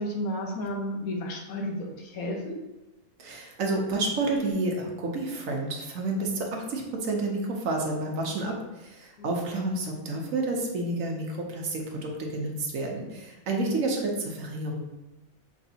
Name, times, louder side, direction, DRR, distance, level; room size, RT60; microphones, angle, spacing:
voice 1, 0.0-2.6 9.2-9.6, left 1 dB, 90° left, 1 dB, 1.3 m, -33 dB
voice 2, 3.2-14.8, right 2 dB, 70° right, 1 dB, 1.2 m, -30 dB
6.0 x 3.2 x 2.7 m, 1.0 s
omnidirectional pair, 1.5 m